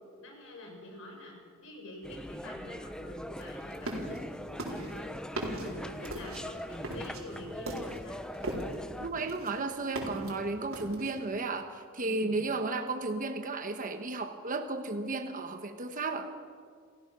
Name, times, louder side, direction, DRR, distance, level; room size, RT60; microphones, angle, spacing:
voice 1, 0.2-8.2 12.0-12.4, left 1 dB, 70° left, 1 dB, 6.4 m, -46 dB
sound 1, 2.0-9.1, equal, 5° left, 0.8 m, -42 dB
sound 2, 3.4-4.2 4.6-8.8 9.2-10.3 10.7-11.2, right 1 dB, 70° right, 4.3 m, -38 dB
voice 2, 9.0-16.3, right 3 dB, 40° right, 5 dB, 1.3 m, -34 dB
29.0 x 16.5 x 6.2 m, 2.1 s
head